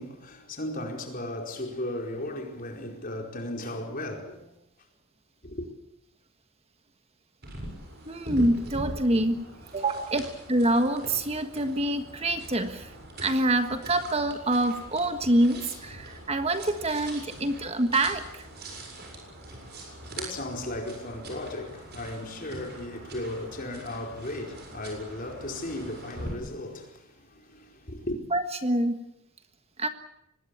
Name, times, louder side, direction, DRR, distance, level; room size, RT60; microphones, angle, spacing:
voice 1, 0.0-4.5 5.4-5.7 19.4-28.2, left 1 dB, 40° left, 4.8 m, -36 dB
sound 1, 7.4-26.3, right 1 dB, 50° right, 7.4 m, -42 dB
voice 2, 8.1-9.5 9.7-10.2 10.5-12.9 13.2-18.5 28.3-29.0 29.8-29.9, right 1 dB, 30° right, 1.4 m, -26 dB
24.0 x 20.5 x 8.6 m
head